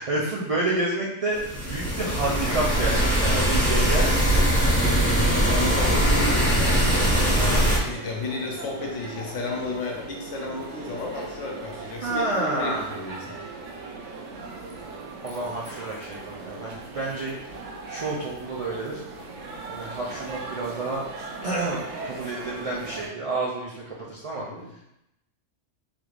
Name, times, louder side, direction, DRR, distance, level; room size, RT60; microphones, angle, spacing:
voice 1, 0.0-4.1 7.4-7.6 12.0-12.9 15.2-17.6 17.9-19.0 19.7-21.0 21.4-24.5, right 2 dB, 60° right, -5 dB, 0.3 m, -29 dB
sound 1, 1.4-7.8, right 1 dB, 5° left, 0.5 m, -21 dB
voice 2, 3.3-6.7 7.8-13.3 24.4-24.8, left 3 dB, 75° left, -1 dB, 1.1 m, -33 dB
sound 2, 6.7-23.1, right 3 dB, 80° right, 1.0 m, -39 dB
3.4 x 3.1 x 2.4 m, 0.85 s
omnidirectional pair, 1.3 m